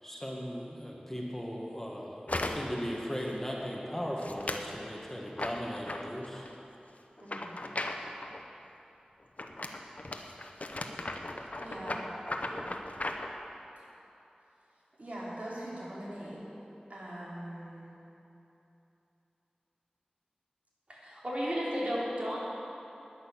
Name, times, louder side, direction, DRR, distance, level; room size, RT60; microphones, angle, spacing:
voice 1, 0.0-6.5, equal, 10° left, -2 dB, 1.5 m, -38 dB
sound 1, 2.3-2.8 3.2-3.6 4.2-4.7 5.4-6.5 7.2-8.4 9.4-13.3, left 2 dB, 55° left, 0.8 m, -37 dB
voice 2, 7.2-7.6 11.3-12.7 13.8-13.9 15.0-16.5 16.9-17.9, right 1 dB, 60° right, -7 dB, 3.6 m, -43 dB
voice 3, 20.9-22.4, equal, 45° right, -7 dB, 3.7 m, -33 dB
11.0 x 10.0 x 7.2 m, 3.0 s
wide cardioid pair, 55°, 3 cm